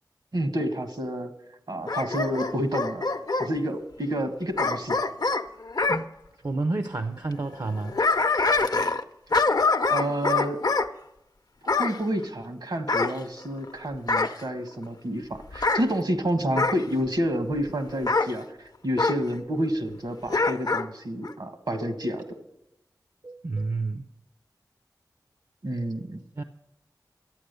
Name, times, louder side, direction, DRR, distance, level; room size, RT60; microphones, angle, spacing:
voice 1, 0.3-1.3 1.7-3.0 3.4-5.0 9.9-10.8 11.8-18.5 18.8-22.4 25.6-26.2, equal, 70° right, 6 dB, 1.4 m, -29 dB
Bark / Growling, 1.9-3.5 4.6-6.0 7.6-9.0 9.3-10.9 11.7-12.0 12.9-13.7 14.1-14.4 15.5-15.8 16.6-16.8 18.1-18.3 19.0-19.2 20.3-20.9 21.2-21.3, left 3 dB, 60° left, 0.6 m, -24 dB
voice 2, 6.4-7.9 23.2-24.0 26.4-26.5, right 3 dB, 55° right, 9 dB, 0.6 m, -29 dB
12.5 x 8.7 x 6.7 m, 0.89 s
wide cardioid pair, 55°, 7 cm